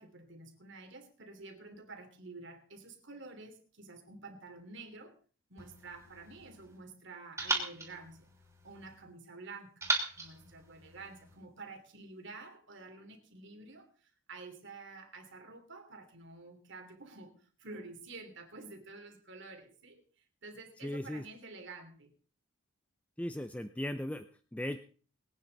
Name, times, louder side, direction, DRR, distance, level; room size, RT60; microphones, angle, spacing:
voice 1, 0.0-5.2 5.5-8.3 8.6-9.9 10.2-22.1, right 3 dB, 55° right, 4 dB, 3.0 m, -50 dB
sound 1, 5.6-6.8 7.4-9.0 9.8-11.4, right 2 dB, 15° right, 3.1 m, -38 dB
voice 2, 20.8-21.2 23.2-24.2 24.5-24.8, left 1 dB, 5° left, 9 dB, 0.5 m, -37 dB
22.5 x 9.4 x 4.0 m, 0.39 s
head